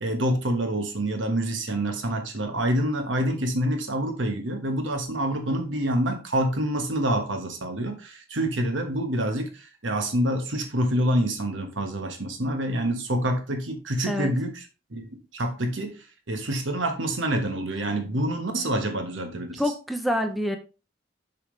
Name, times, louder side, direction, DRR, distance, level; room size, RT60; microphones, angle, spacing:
voice 1, 0.0-14.5 14.9-15.9 16.3-19.6, right 1 dB, 80° right, 1.3 m, -27 dB
voice 2, 19.6-20.6, equal, ahead, 0.7 m, -26 dB
6.9 x 5.9 x 3.2 m
head